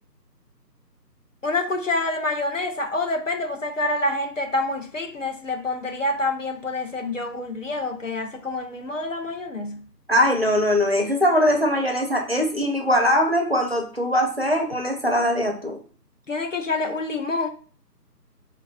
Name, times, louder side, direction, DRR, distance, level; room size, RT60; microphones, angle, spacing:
voice 1, 1.4-9.8 16.3-17.5, left 2 dB, 50° left, 0.5 m, -27 dB
voice 2, 10.1-15.8, equal, 40° right, 0.5 m, -21 dB
4.8 x 2.2 x 2.6 m
figure-of-eight pair, 160°, 50 cm